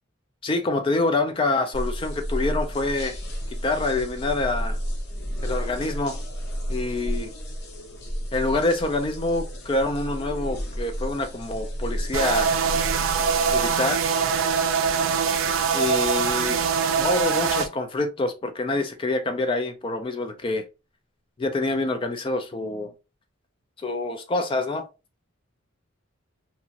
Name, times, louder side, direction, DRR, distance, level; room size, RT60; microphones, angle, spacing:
voice 1, 0.4-3.2 3.5-4.8 5.4-6.2 6.7-7.3 8.3-12.5 13.5-14.1 15.7-16.6 17.0-20.6 21.4-22.9 23.8-24.8, left 2 dB, 25° left, 0.3 m, -26 dB
sound 1, 1.7-13.7, equal, 55° left, 0.8 m, -32 dB
sound 2, 12.1-17.7, right 6 dB, 75° right, 0.4 m, -23 dB
2.8 x 2.4 x 2.8 m
head